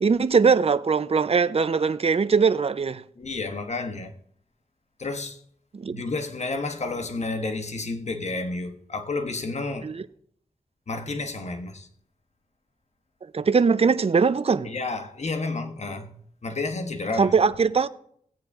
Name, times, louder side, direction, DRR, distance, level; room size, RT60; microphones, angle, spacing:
voice 1, 0.0-3.0 5.7-6.0 9.8-10.0 13.3-14.7 17.2-17.9, right 5 dB, 50° right, 0.5 m, -21 dB
voice 2, 3.2-4.1 5.0-5.4 5.9-9.9 10.9-11.9 14.6-16.2 16.4-17.4, left 3 dB, 55° left, 1.2 m, -31 dB
17.0 x 8.3 x 3.6 m
wide cardioid pair, 75°, 13 cm